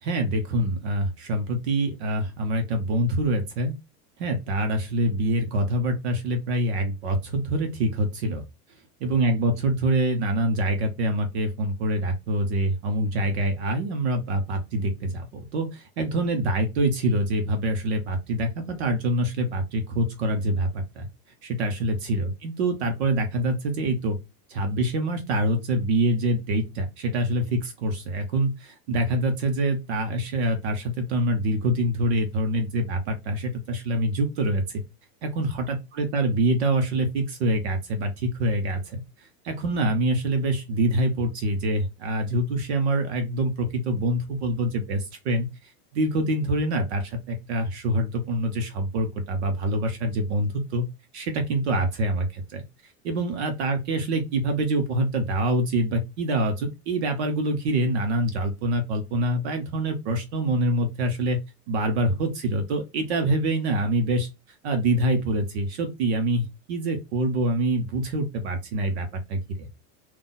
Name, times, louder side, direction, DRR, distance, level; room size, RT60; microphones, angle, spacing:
voice 1, 0.0-3.7 4.2-8.4 9.0-21.1 21.4-24.2 24.5-34.6 35.2-39.0 39.4-50.8 51.1-52.6 53.0-61.4 61.7-64.3 64.6-69.7, right 1 dB, 45° right, 6 dB, 0.8 m, -25 dB
3.9 x 2.4 x 3.8 m, 0.24 s
supercardioid pair, 175°, 46 cm